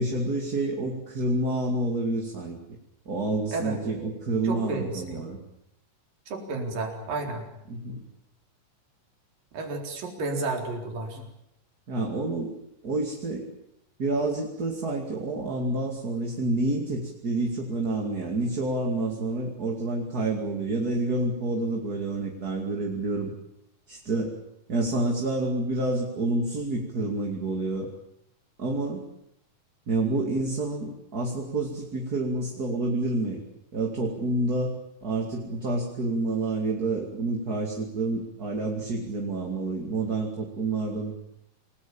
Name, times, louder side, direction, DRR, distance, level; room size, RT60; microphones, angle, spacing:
voice 1, 0.0-2.6 3.1-5.4 7.7-8.0 11.2-11.3 11.9-12.6 12.8-13.5 14.0-23.3 23.9-24.4 24.7-27.9 28.6-29.0 29.9-33.4 33.7-34.8 35.0-41.1, right 2 dB, 30° right, 2 dB, 2.7 m, -28 dB
voice 2, 4.4-5.2 6.3-7.5 9.5-11.2, right 3 dB, 85° right, 2 dB, 5.9 m, -32 dB
27.5 x 19.5 x 8.9 m, 0.79 s
omnidirectional pair, 3.8 m